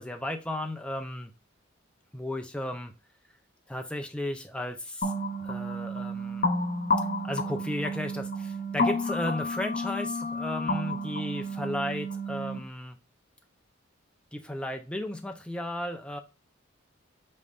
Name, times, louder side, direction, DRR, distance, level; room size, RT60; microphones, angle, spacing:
voice 1, 0.0-1.3 2.1-2.9 3.7-5.1 5.4-6.5 7.2-13.0 14.3-16.2, left 1 dB, 5° left, 5 dB, 0.5 m, -34 dB
sound 1, 5.0-12.6, left 1 dB, 40° left, 0.8 m, -31 dB
5.3 x 3.3 x 2.4 m, 0.30 s
head